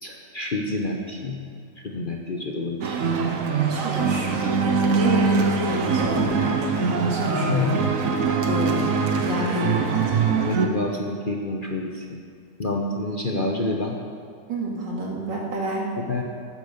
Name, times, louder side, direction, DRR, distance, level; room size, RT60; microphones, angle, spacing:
voice 1, 0.0-1.4 1.8-3.0 4.7-5.0 7.3-7.7 10.4-12.2 12.6-14.0 16.0-16.2, left 2 dB, 40° left, 0 dB, 0.9 m, -28 dB
sound 1, 2.8-10.7, right 5 dB, 55° right, 1.2 m, -23 dB
voice 2, 3.7-4.3 4.9-7.7 8.5-10.4 14.5-15.9, right 1 dB, 85° right, -2 dB, 2.8 m, -29 dB
12.5 x 8.5 x 6.7 m, 2.2 s
omnidirectional pair, 1.9 m